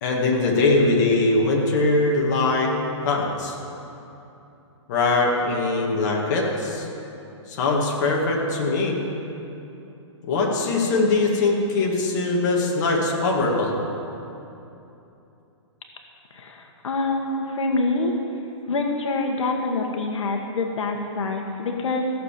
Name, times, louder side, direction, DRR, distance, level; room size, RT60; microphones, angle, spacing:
voice 1, 0.0-2.7 3.1-3.6 4.9-6.9 7.5-9.0 10.2-13.8, left 2 dB, 35° left, -2 dB, 2.1 m, -21 dB
voice 2, 16.3-18.1 18.7-22.1, left 3 dB, 80° left, 2 dB, 1.5 m, -26 dB
15.5 x 6.8 x 7.5 m, 2.9 s
hypercardioid pair, 165°, 16 cm